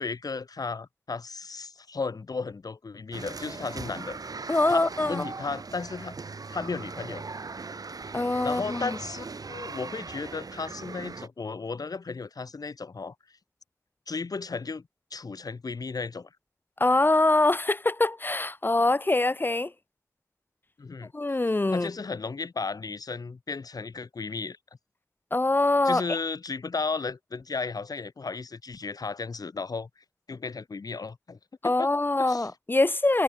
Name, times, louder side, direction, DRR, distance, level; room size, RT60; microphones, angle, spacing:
voice 1, 0.0-4.2 4.7-6.2 6.5-7.3 8.4-13.1 14.1-16.3 20.8-21.1 21.7-24.6 25.8-29.9 30.3-31.9 32.2-32.5, left 4 dB, 90° left, 2.2 m, -34 dB
sound 1, 3.1-11.3, right 4 dB, 80° right, 2.2 m, -39 dB
voice 2, 4.5-5.2 8.1-9.0 16.8-19.7 21.1-21.9 25.3-26.0 31.6-33.2, left 2 dB, 35° left, 0.7 m, -24 dB
wide cardioid pair, 80°, 6 cm